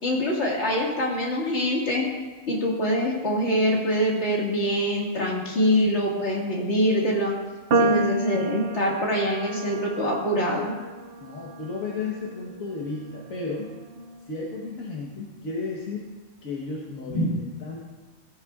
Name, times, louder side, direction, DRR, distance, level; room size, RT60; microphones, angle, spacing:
voice 1, 0.0-2.1 2.5-7.4 7.8-10.8 17.1-17.3, equal, 55° left, -3 dB, 2.2 m, -24 dB
voice 2, 7.7-8.1 11.2-13.7 14.3-16.1 16.4-17.8, left 3 dB, 75° left, -3 dB, 1.6 m, -34 dB
sound 1, 7.7-14.0, right 2 dB, 55° right, 0.7 m, -30 dB
15.5 x 10.0 x 2.4 m, 1.3 s
omnidirectional pair, 1.5 m